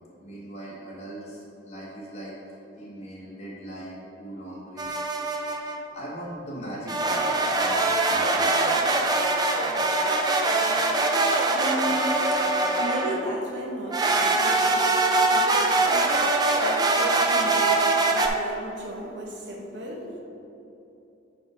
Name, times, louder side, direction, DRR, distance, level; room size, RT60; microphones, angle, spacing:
voice 1, 0.2-2.3 2.7-4.9 5.6-5.7 5.9-7.3 7.6-8.8 11.9-12.8, right 1 dB, 35° left, -7 dB, 1.5 m, -40 dB
sound 1, 4.8-5.8 6.9-13.3 13.9-18.3, right 2 dB, 20° right, 0.4 m, -23 dB
voice 2, 11.5-20.1, equal, 65° right, -1 dB, 1.1 m, -35 dB
5.9 x 4.9 x 4.9 m, 3.0 s
head